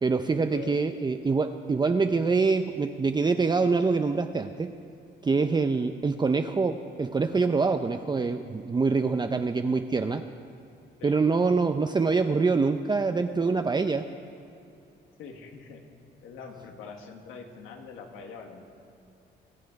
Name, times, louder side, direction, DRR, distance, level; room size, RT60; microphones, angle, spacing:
voice 1, 0.0-4.7 5.2-10.3 11.0-14.1, right 4 dB, 20° right, 7 dB, 0.6 m, -25 dB
voice 2, 15.2-15.8 16.2-18.6, left 6 dB, 90° left, 3 dB, 1.9 m, -43 dB
24.5 x 8.3 x 5.3 m, 2.6 s
cardioid pair, 90°, 20 cm